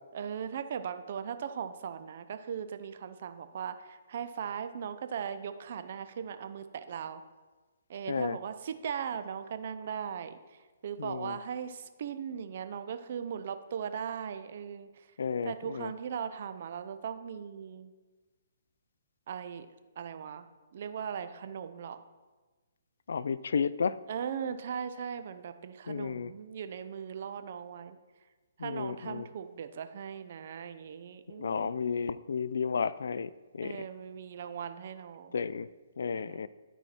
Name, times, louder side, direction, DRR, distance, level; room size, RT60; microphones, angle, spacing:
voice 1, 0.1-7.2 7.9-15.1 15.4-17.9 19.3-19.7 20.0-22.1 24.1-28.0 28.6-31.8 33.6-35.4 36.1-36.4, right 7 dB, 55° right, 10 dB, 0.7 m, -39 dB
voice 2, 11.0-11.4 15.2-15.9 23.1-24.0 25.9-26.3 28.6-29.3 31.3-33.8 35.3-35.7 36.0-36.5, left 6 dB, 70° left, 17 dB, 0.4 m, -32 dB
13.0 x 4.6 x 4.4 m, 1.3 s
hypercardioid pair, 140°, 0 cm